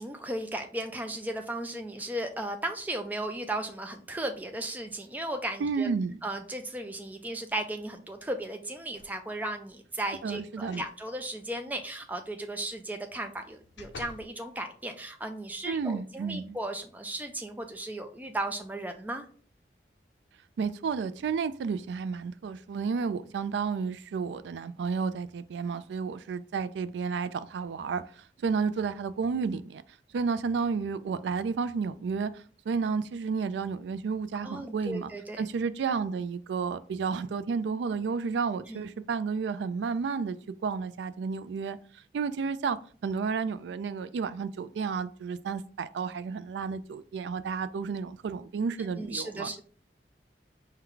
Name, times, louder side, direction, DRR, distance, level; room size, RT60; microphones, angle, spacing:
voice 1, 0.0-5.9 6.2-19.3 34.4-35.5 38.7-38.8 48.8-49.6, right 1 dB, 10° right, 5 dB, 0.4 m, -36 dB
voice 2, 5.6-6.1 10.2-10.8 15.7-16.6 20.6-28.0 28.4-29.8 30.1-35.1 35.4-40.4 40.6-41.8 42.1-49.6, right 5 dB, 85° right, 13 dB, 0.3 m, -31 dB
sound 1, 8.9-9.5 10.6-11.0 11.4-11.5 13.1-14.3 14.9-15.0, left 4 dB, 90° left, 0.4 m, -49 dB
4.5 x 2.2 x 3.8 m, 0.43 s
head